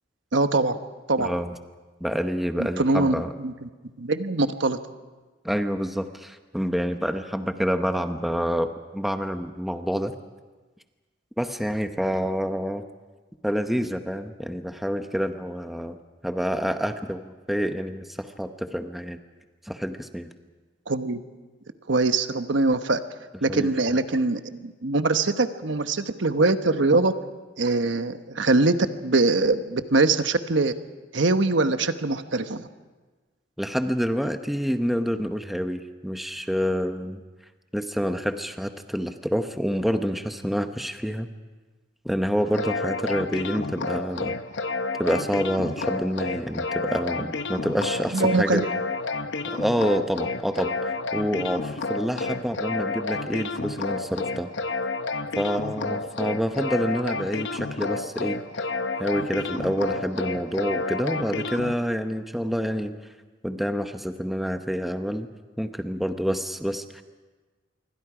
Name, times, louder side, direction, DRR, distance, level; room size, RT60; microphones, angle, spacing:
voice 1, 0.3-0.8 1.1-1.3 2.6-3.7 4.0-4.8 20.9-21.2 21.9-23.0 23.4-27.1 27.6-28.7 29.0-30.7 31.1-32.7 48.1-48.7, right 3 dB, 75° right, 9 dB, 1.1 m, -23 dB
voice 2, 1.2-1.5 2.0-3.3 5.4-10.1 11.4-12.8 13.4-16.0 16.2-19.2 19.6-20.3 23.5-23.7 33.6-37.2 37.7-41.3 42.0-44.4 45.0-48.6 49.4-54.5 55.4-58.4 59.0-62.9 63.4-65.3 65.6-67.0, equal, ahead, 7 dB, 0.9 m, -27 dB
sound 1, 42.4-61.7, left 3 dB, 70° left, 1.0 m, -30 dB
26.5 x 24.0 x 5.0 m, 1.3 s
head